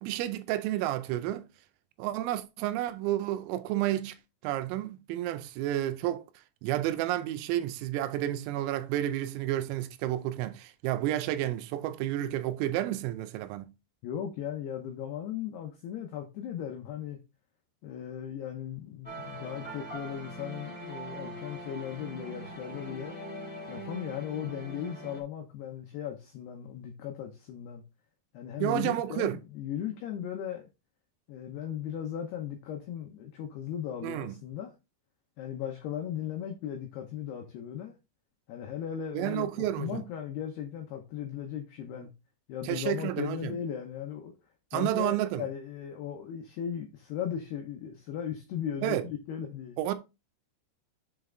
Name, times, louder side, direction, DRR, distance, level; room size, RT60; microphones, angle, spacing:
voice 1, 0.0-1.5 2.0-4.2 4.4-6.3 6.6-13.7 28.6-29.4 34.0-34.4 39.1-40.0 42.6-43.6 44.7-45.5 48.8-49.1 49.8-49.9, right 13 dB, 85° right, 3.3 m, -31 dB
voice 2, 14.0-17.2 17.8-23.2 23.7-27.8 28.3-30.7 31.3-34.7 35.4-37.9 38.5-42.1 42.5-44.3 44.7-49.8, left 9 dB, 85° left, 2.3 m, -37 dB
sound 1, 19.0-25.2, right 1 dB, 20° left, 1.7 m, -42 dB
7.2 x 5.5 x 3.8 m
omnidirectional pair, 6.0 m